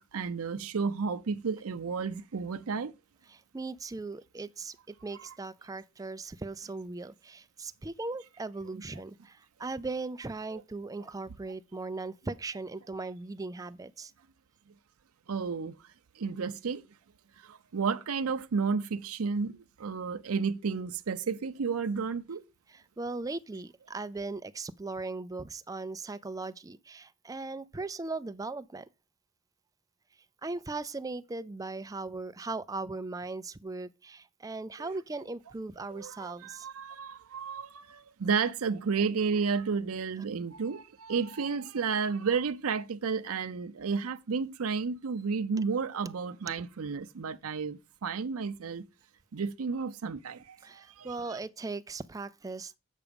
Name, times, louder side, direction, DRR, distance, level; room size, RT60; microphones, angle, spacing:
voice 1, 0.0-2.9 10.5-10.6 15.3-15.8 16.2-16.9 17.4-22.4 34.8-34.9 35.9-48.8 49.3-51.4, right 5 dB, 75° right, 0.5 m, -32 dB
voice 2, 3.3-14.1 22.7-28.9 30.4-36.7 46.5-46.6 50.6-52.8, right 3 dB, 15° right, 0.4 m, -38 dB
8.3 x 5.9 x 5.1 m
head